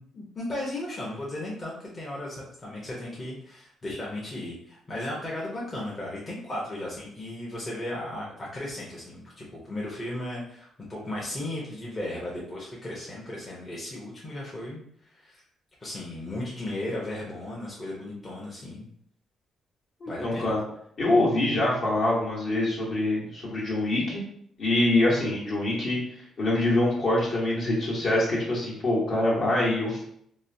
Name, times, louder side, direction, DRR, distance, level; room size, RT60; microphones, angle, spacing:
voice 1, 0.0-14.8 15.1-15.4 15.8-18.9 20.1-20.6, left 1 dB, 30° left, -5 dB, 0.8 m, -35 dB
voice 2, 20.0-20.6 21.0-24.2 24.6-26.0 26.4-30.0, left 1 dB, 60° left, -5 dB, 1.2 m, -25 dB
2.9 x 2.1 x 2.7 m, 0.68 s
cardioid pair, 90°, 0 cm